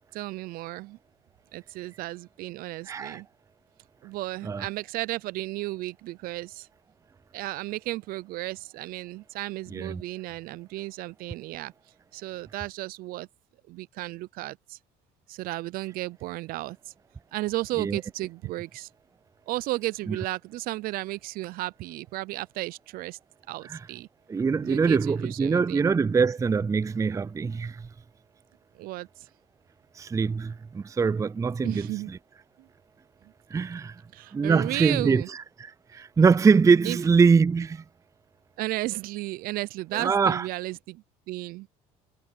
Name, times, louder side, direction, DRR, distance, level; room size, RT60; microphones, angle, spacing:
voice 1, 0.1-1.0 1.5-3.3 4.0-6.7 7.3-11.7 12.1-13.3 13.7-14.8 15.3-16.8 17.3-18.9 19.5-23.2 23.5-24.1 24.6-25.9 28.8-29.1 31.6-32.1 32.6-32.7 34.1-35.3 36.8-37.0 38.6-41.7, right 18 dB, 65° right, 0.7 m, -34 dB
voice 2, 2.9-3.2 4.4-4.7 9.7-10.0 17.8-18.0 20.1-20.2 23.6-23.9 24.3-27.9 30.0-32.2 33.5-34.0 34.3-37.8 39.9-40.5, right 5 dB, 20° right, 0.5 m, -23 dB
hypercardioid pair, 65°, 16 cm